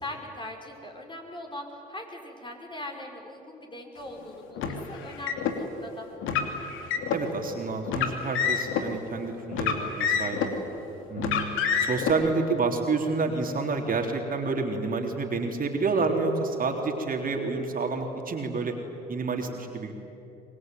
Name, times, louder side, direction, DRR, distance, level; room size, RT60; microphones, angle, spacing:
voice 1, 0.0-6.1, left 1 dB, 20° left, 2 dB, 5.7 m, -40 dB
Car, 4.6-5.5 6.2-7.2 7.9-8.8 9.5-10.6 11.2-12.1, left 7 dB, 70° left, 2.7 m, -27 dB
voice 2, 7.1-10.5 11.1-11.5 11.8-18.7 19.1-19.9, right 4 dB, 40° right, 2 dB, 3.6 m, -29 dB
25.0 x 21.0 x 9.3 m, 2.9 s
hypercardioid pair, 65°, 21 cm